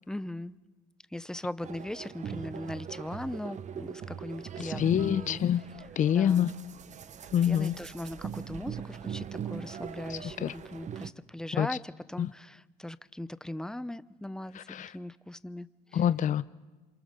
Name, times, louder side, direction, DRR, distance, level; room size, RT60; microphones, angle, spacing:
voice 1, 0.1-0.6 1.1-5.4 6.1-6.5 7.4-16.1, left 1 dB, 5° left, 0.7 m, -39 dB
sound 1, 1.6-11.1, right 8 dB, 45° right, 1.0 m, -41 dB
voice 2, 4.6-5.6 6.0-6.5 7.3-7.7 10.1-10.5 11.6-11.7 12.2-12.3 14.6-14.9 15.9-16.4, left 9 dB, 50° left, 0.7 m, -26 dB
28.0 x 27.0 x 6.7 m
cardioid pair, 110°, 17 cm